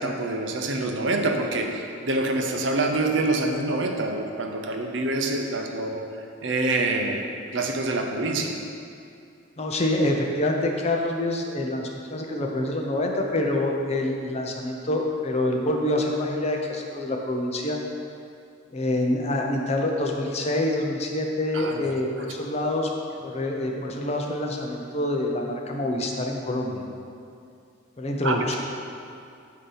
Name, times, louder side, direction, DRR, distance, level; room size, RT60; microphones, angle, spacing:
voice 1, 0.0-6.0 6.4-7.2 7.5-8.6 21.5-21.9 28.2-28.6, right 2 dB, 70° right, 3 dB, 0.6 m, -26 dB
voice 2, 9.6-17.8 18.7-22.9 23.2-26.8 28.0-28.6, left 1 dB, 35° left, 1 dB, 0.6 m, -26 dB
8.5 x 2.8 x 5.5 m, 2.5 s
head